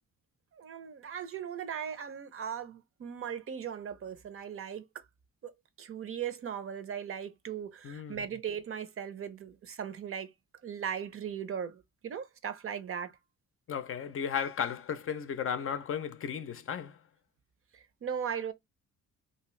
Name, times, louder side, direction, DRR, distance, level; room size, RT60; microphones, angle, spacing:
voice 1, 0.5-5.0 5.4-5.5 5.8-10.3 10.6-13.2 17.7-18.5, right 8 dB, 45° right, 0.6 m, -38 dB
voice 2, 7.8-8.2 13.7-17.0, left 7 dB, 45° left, 0.5 m, -35 dB
2.8 x 2.4 x 3.0 m
cardioid pair, 90°, 30 cm